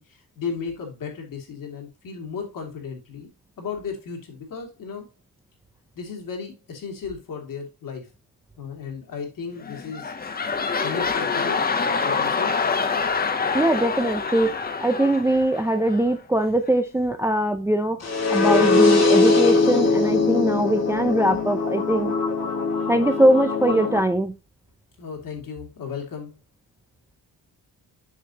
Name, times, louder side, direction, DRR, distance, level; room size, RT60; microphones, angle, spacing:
voice 1, 0.0-3.3 3.6-5.1 5.9-8.1 8.6-10.1 10.8-11.6 12.0-12.6 25.0-26.3, left 6 dB, 60° left, 2.4 m, -34 dB
sound 1, 9.6-16.2 16.7-16.8, left 5 dB, 25° left, 0.7 m, -26 dB
voice 2, 13.5-22.1 22.9-24.4, right 1 dB, 10° right, 0.4 m, -22 dB
sound 2, 18.0-24.0, left 4 dB, 45° left, 2.0 m, -21 dB
7.3 x 6.3 x 2.8 m
wide cardioid pair, 150°, 36 cm